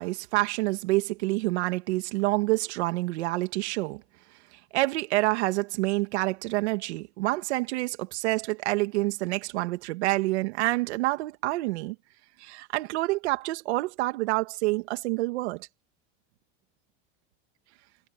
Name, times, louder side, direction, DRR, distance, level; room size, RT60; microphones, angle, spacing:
voice 1, 0.0-4.0 4.7-12.0 12.4-15.7, right 20 dB, 90° right, 2.4 m, -27 dB
cardioid pair, 175°, 33 cm